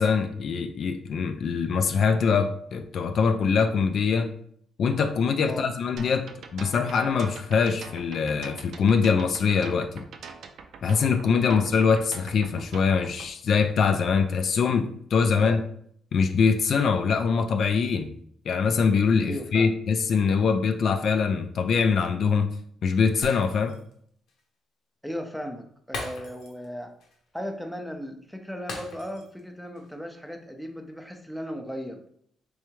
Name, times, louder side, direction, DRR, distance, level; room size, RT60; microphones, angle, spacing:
voice 1, 0.0-4.3 4.8-6.3 6.5-10.0 10.8-14.9 15.1-15.6 16.1-18.1 18.5-22.5 22.8-23.8, left 5 dB, 55° left, 7 dB, 0.3 m, -23 dB
sound 1, 6.0-13.3, right 5 dB, 70° right, 0.4 m, -43 dB
voice 2, 19.2-19.8 25.0-26.9 27.3-32.0, equal, ahead, 4 dB, 0.5 m, -36 dB
Shatter, 23.2-23.9 24.3-24.4 25.9-26.7 27.0-27.2 28.7-29.4 29.7-29.9, left 2 dB, 80° left, 0.8 m, -39 dB
3.5 x 3.3 x 3.1 m, 0.64 s
cardioid pair, 135°, 0 cm